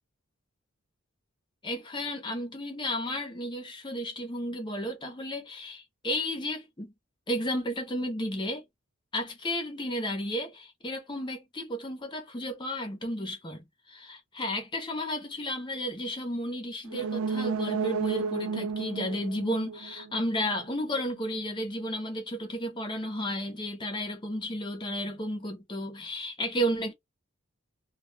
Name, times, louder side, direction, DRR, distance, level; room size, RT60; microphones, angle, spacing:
voice 1, 1.6-6.9 7.3-8.6 9.1-26.9, equal, 20° left, 0.7 m, -33 dB
sound 1, 16.9-20.6 20.9-21.0, right 5 dB, 70° right, 0.3 m, -32 dB
2.3 x 2.2 x 3.3 m
head